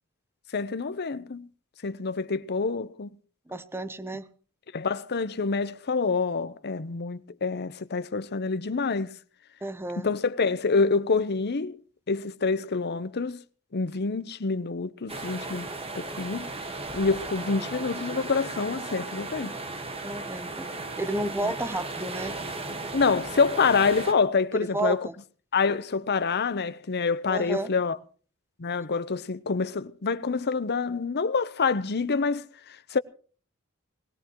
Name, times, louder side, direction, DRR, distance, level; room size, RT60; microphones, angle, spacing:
voice 1, 0.5-1.5 1.8-3.2 4.7-9.2 10.0-11.8 12.1-13.4 13.7-15.7 15.9-16.5 16.9-19.5 21.4-21.5 22.9-25.0 25.5-28.0 28.6-32.5 32.9-33.0, left 4 dB, 50° left, 0.8 m, -27 dB
voice 2, 3.5-4.3 9.6-10.1 20.0-20.7 21.0-22.4 24.5-25.1 27.3-27.7, right 1 dB, 10° right, 0.8 m, -31 dB
sound 1, 15.1-24.1, right 2 dB, 25° right, 1.5 m, -36 dB
21.5 x 17.0 x 3.0 m
head